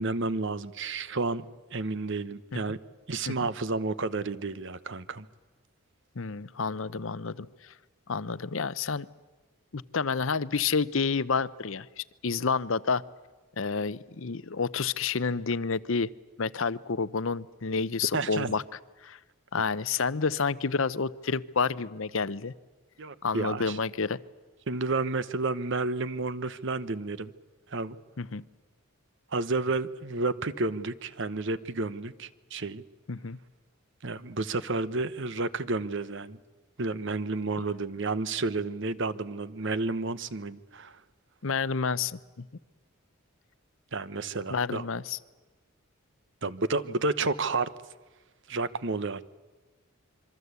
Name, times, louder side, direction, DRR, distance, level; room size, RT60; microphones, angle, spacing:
voice 1, 0.0-1.4 1.7-2.8 3.1-5.3 18.1-18.5 23.0-23.8 24.7-27.3 27.7-28.0 29.3-32.8 34.0-36.4 36.8-41.0 43.9-44.9 46.4-47.7 48.5-49.2, right 3 dB, 60° right, 15 dB, 1.0 m, -31 dB
voice 2, 6.2-7.7 8.1-9.1 9.7-13.0 13.6-16.1 16.4-18.6 19.0-19.2 19.5-22.5 23.2-24.2 28.2-28.4 33.1-33.4 41.4-42.5 44.5-45.2, left 5 dB, 65° left, 16 dB, 0.8 m, -29 dB
26.5 x 24.0 x 8.2 m, 1.3 s
head